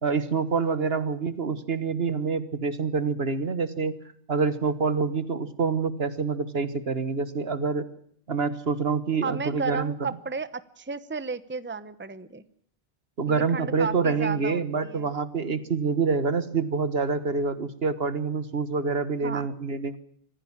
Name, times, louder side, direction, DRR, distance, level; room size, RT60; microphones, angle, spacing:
voice 1, 0.0-4.0 4.3-7.9 8.3-10.1 13.2-20.0, right 5 dB, 70° right, 14 dB, 1.7 m, -26 dB
voice 2, 9.2-12.4 13.3-15.1 19.2-19.5, right 5 dB, 10° right, 15 dB, 0.9 m, -33 dB
25.0 x 16.0 x 7.3 m, 0.65 s
omnidirectional pair, 1.1 m